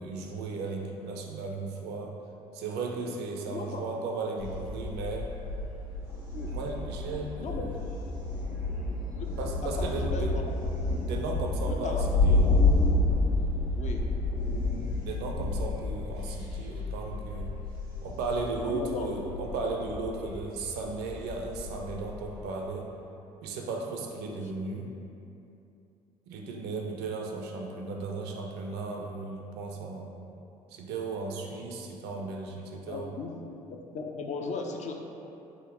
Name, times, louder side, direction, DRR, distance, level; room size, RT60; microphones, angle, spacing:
voice 1, 0.0-2.2 2.5-5.3 6.5-7.8 9.4-10.4 11.0-12.4 15.0-17.6 18.0-22.9 23.4-24.9 26.3-30.1 30.7-33.1, right 3 dB, 60° right, 1 dB, 0.5 m, -35 dB
voice 2, 3.5-3.9 6.3-6.5 7.4-7.7 9.2-9.3 9.6-10.7 11.7-12.1 12.4-12.6 13.7-14.1 18.6-19.1 24.3-24.4 32.9-33.3 33.7-34.9, left 4 dB, 40° left, 2 dB, 0.4 m, -37 dB
Thunder, 4.4-22.4, left 2 dB, 85° left, 1.4 m, -30 dB
3.7 x 2.0 x 3.6 m, 2.8 s
hypercardioid pair, 55°, 19 cm